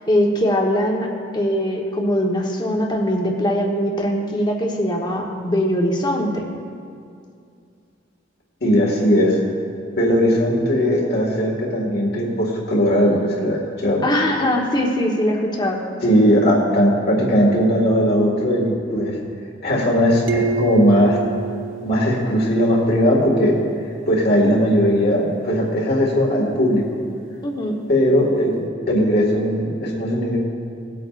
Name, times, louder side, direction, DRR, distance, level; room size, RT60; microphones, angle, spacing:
voice 1, 0.1-1.1 1.3-6.4 14.0-15.8 27.4-27.8, equal, 25° left, 0 dB, 1.1 m, -21 dB
voice 2, 8.6-9.4 9.9-14.0 16.0-19.2 19.6-21.2 21.8-23.6 24.1-26.8 27.9-30.4, equal, 60° left, -2 dB, 1.9 m, -18 dB
sound 1, 20.3-22.8, right 6 dB, 90° right, 0.5 m, -27 dB
18.0 x 8.4 x 2.5 m, 2.4 s
head